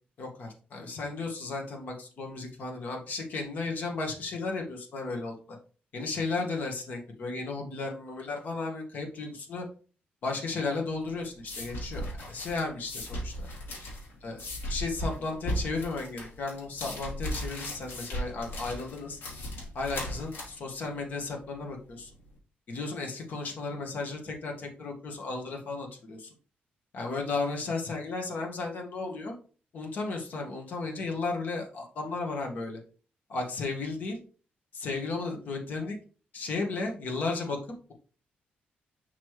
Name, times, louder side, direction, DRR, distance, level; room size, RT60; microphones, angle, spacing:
voice 1, 0.2-5.6 5.9-9.6 10.2-13.5 14.2-14.4 14.6-19.2 19.7-22.1 22.7-26.3 26.9-29.3 29.7-32.8 33.3-34.2 34.7-36.0 36.3-37.6, left 3 dB, 55° left, 1 dB, 1.7 m, -34 dB
sound 1, 10.9-22.3, equal, 85° left, 3.5 m, -37 dB
6.1 x 5.8 x 3.2 m, 0.37 s
wide cardioid pair, 170°, 4 cm